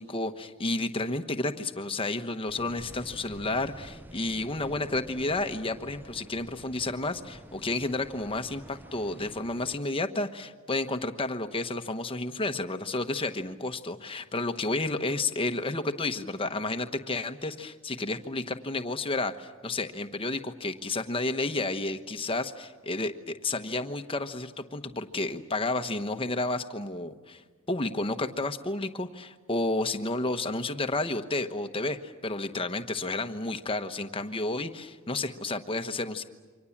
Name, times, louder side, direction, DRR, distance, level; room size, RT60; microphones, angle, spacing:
voice 1, 0.0-27.4 27.7-36.2, left 2 dB, 25° left, 8 dB, 1.1 m, -31 dB
sound 1, 2.5-9.8, equal, 10° right, 0.7 m, -48 dB
28.5 x 25.0 x 7.3 m, 1.5 s
head